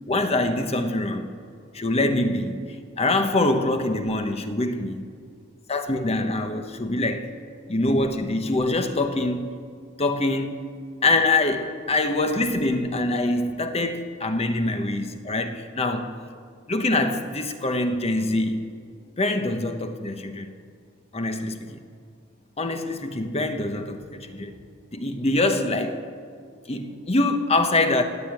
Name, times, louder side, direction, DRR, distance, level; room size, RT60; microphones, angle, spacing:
voice 1, 0.1-1.3 1.7-2.6 3.0-4.9 5.7-7.3 7.7-9.5 10.0-10.7 11.0-16.1 16.7-18.7 19.2-20.5 21.1-21.8 22.6-24.5 24.9-26.1 26.7-28.0, left 2 dB, 30° left, 1.0 m, -24 dB
17.0 x 9.1 x 9.0 m
head